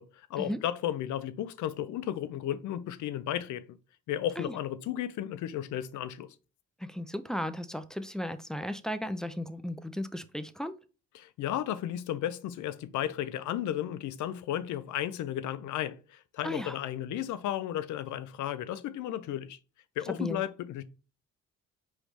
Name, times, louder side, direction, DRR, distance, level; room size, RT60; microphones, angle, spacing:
voice 1, 0.0-3.8 4.1-6.3 11.1-19.6 20.0-20.8, left 11 dB, 75° left, 0.5 m, -34 dB
voice 2, 6.8-10.7 16.4-16.8 20.1-20.4, equal, ahead, 0.3 m, -35 dB
4.9 x 3.1 x 3.2 m
cardioid pair, 90°, 30 cm